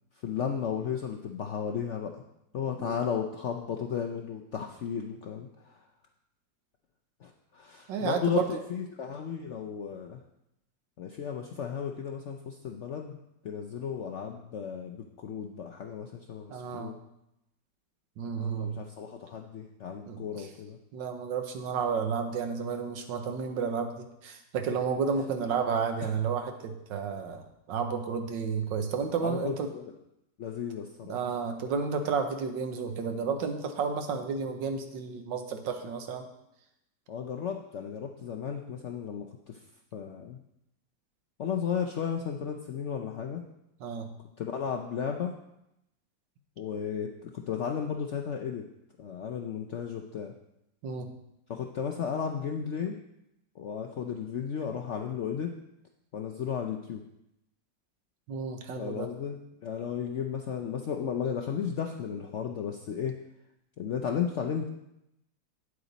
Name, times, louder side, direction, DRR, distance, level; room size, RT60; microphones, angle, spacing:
voice 1, 0.2-2.2 2.5-5.8 7.2-10.2 11.0-17.0 18.4-20.8 29.2-29.9 30.4-31.2 37.1-39.6 39.9-40.4 41.4-43.4 44.4-45.3 46.6-48.7 49.0-50.3 51.5-53.0 53.6-55.5 56.1-57.0 58.7-63.1 63.8-64.7, left 7 dB, 70° left, 3 dB, 0.6 m, -34 dB
voice 2, 7.9-8.6 16.5-16.9 18.2-18.8 20.1-20.5 20.9-29.7 31.1-36.3 43.8-44.1 50.8-51.1 58.3-59.1, right 6 dB, 90° right, 6 dB, 1.6 m, -32 dB
8.9 x 7.9 x 4.0 m, 0.84 s
omnidirectional pair, 1.9 m